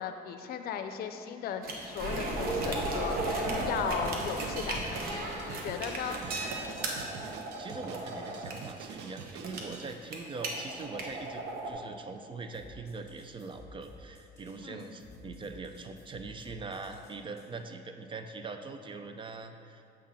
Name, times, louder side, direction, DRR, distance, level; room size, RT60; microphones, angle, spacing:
voice 1, 0.0-6.2 14.6-14.8, left 8 dB, 65° left, 7 dB, 0.5 m, -37 dB
sound 1, 1.6-11.7, right 2 dB, 60° right, 1.1 m, -35 dB
Drum kit, 4.0-9.9, right 6 dB, 85° right, 0.5 m, -46 dB
voice 2, 4.8-5.6 6.1-6.5 7.6-19.8, right 3 dB, 30° right, 7 dB, 0.5 m, -42 dB
sound 2, 12.5-17.5, left 1 dB, 15° left, 1.7 m, -53 dB
7.5 x 3.7 x 5.7 m, 2.6 s
cardioid pair, 110°, 17 cm